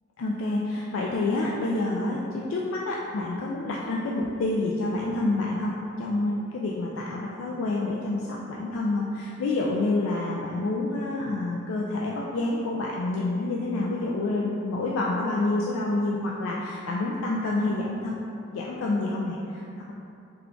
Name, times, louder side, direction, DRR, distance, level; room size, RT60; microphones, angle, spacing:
voice 1, 0.2-18.2 18.5-19.9, left 2 dB, 75° left, -3 dB, 0.3 m, -28 dB
3.4 x 2.3 x 3.7 m, 2.6 s
head